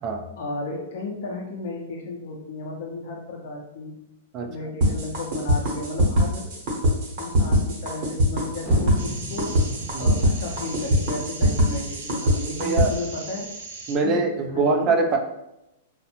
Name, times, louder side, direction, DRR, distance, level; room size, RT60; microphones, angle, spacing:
voice 1, 0.4-4.0 4.4-6.5 7.2-9.6 10.0-13.5 14.0-14.2 14.5-14.9, left 2 dB, 55° left, 0 dB, 0.5 m, -34 dB
sound 1, 4.8-12.9, equal, 45° right, 0.8 m, -21 dB
sound 2, 8.7-12.2, left 1 dB, 10° left, 0.6 m, -37 dB
sound 3, 9.0-14.0, right 4 dB, 85° right, 0.6 m, -39 dB
voice 2, 12.6-12.9 13.9-15.2, right 3 dB, 25° right, 3 dB, 0.3 m, -23 dB
2.6 x 2.1 x 2.8 m, 0.86 s
supercardioid pair, 160°, 0 cm